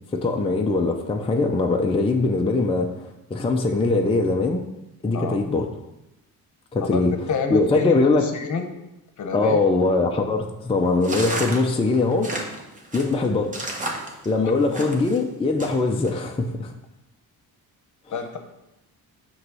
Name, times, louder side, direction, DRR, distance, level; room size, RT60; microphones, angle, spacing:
voice 1, 0.1-4.7 5.0-5.7 6.7-7.1 7.5-8.2 9.3-12.3 12.9-13.5 14.3-16.7, left 3 dB, 15° left, 2 dB, 0.5 m, -22 dB
voice 2, 7.3-8.7 9.2-9.6 14.4-14.5 18.1-18.4, left 5 dB, 50° left, 5 dB, 0.9 m, -28 dB
sound 1, 11.0-15.2 15.6-16.1, right 1 dB, 20° right, 1.1 m, -32 dB
7.7 x 3.1 x 6.1 m, 0.93 s
cardioid pair, 135°, 38 cm